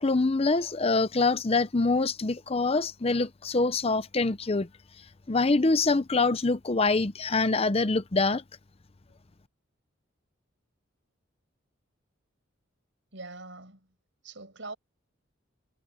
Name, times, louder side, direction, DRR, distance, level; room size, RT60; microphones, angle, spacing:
voice 1, 0.0-4.7 5.3-8.4, left 3 dB, 30° left, 0.7 m, -25 dB
voice 2, 13.1-13.9 14.2-14.8, right 3 dB, 70° right, 6.8 m, -42 dB
head